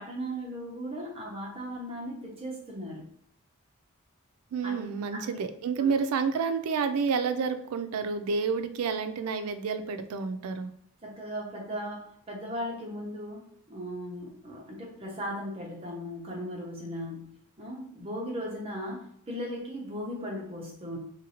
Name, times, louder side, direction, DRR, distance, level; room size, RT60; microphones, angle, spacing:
voice 1, 0.0-3.1 4.6-5.4 5.8-5.9 11.0-21.0, equal, 25° right, -2 dB, 0.8 m, -37 dB
voice 2, 4.5-10.7, right 5 dB, 80° right, 9 dB, 0.3 m, -29 dB
3.0 x 2.6 x 2.9 m, 0.67 s
head